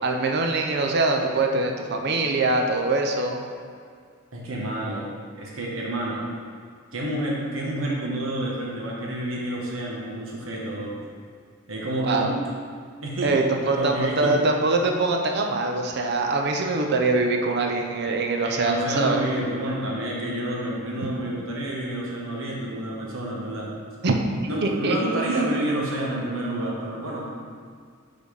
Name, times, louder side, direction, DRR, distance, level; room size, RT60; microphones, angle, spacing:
voice 1, 0.0-3.4 12.0-12.3 13.2-19.2 24.0-24.2 24.6-25.0, right 3 dB, 55° right, 3 dB, 0.6 m, -23 dB
voice 2, 4.3-5.1 5.4-6.2 6.9-11.0 11.7-12.3 13.0-13.4 13.7-14.4 18.4-24.0 24.5-27.3, right 1 dB, 80° right, -3 dB, 1.2 m, -29 dB
5.0 x 4.0 x 5.0 m, 2.1 s
head